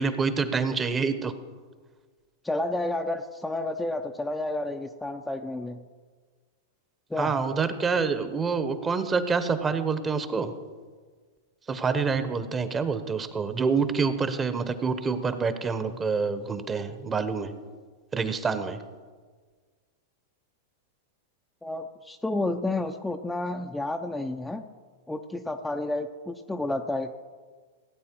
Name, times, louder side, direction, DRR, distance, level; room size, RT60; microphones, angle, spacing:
voice 1, 0.0-1.3 7.2-10.5 11.7-17.5 18.1-18.8, right 5 dB, 20° right, 11 dB, 1.1 m, -27 dB
voice 2, 2.4-5.8 7.1-7.4 21.6-24.6 25.1-27.3, left 2 dB, 5° left, 4 dB, 0.6 m, -31 dB
17.0 x 8.6 x 4.6 m, 1.5 s
hypercardioid pair, 105°, 0 cm